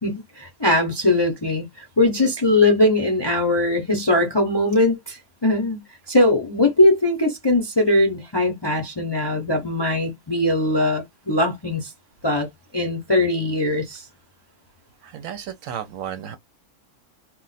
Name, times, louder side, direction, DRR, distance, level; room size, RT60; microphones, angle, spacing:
voice 1, 0.0-5.8 6.1-11.9 12.2-12.5 12.7-14.0, left 2 dB, 30° left, 0.5 m, -20 dB
voice 2, 15.0-16.4, right 9 dB, 70° right, 0.9 m, -33 dB
2.4 x 2.1 x 3.9 m
omnidirectional pair, 1.5 m